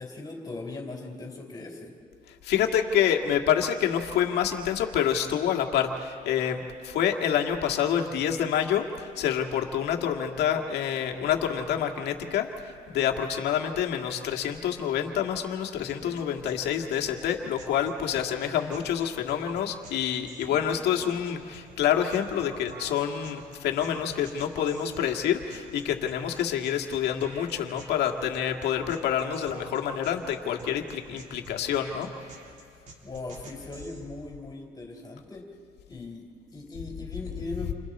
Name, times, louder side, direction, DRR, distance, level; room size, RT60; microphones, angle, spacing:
voice 1, 0.0-1.9 33.0-35.5 35.9-37.7, left 2 dB, 20° left, 1 dB, 4.0 m, -39 dB
voice 2, 2.4-32.1, left 9 dB, 75° left, 3 dB, 2.0 m, -27 dB
sound 1, 15.9-34.0, right 2 dB, 45° right, 3.5 m, -49 dB
29.5 x 27.0 x 4.3 m, 2.4 s
cardioid pair, 110°, 17 cm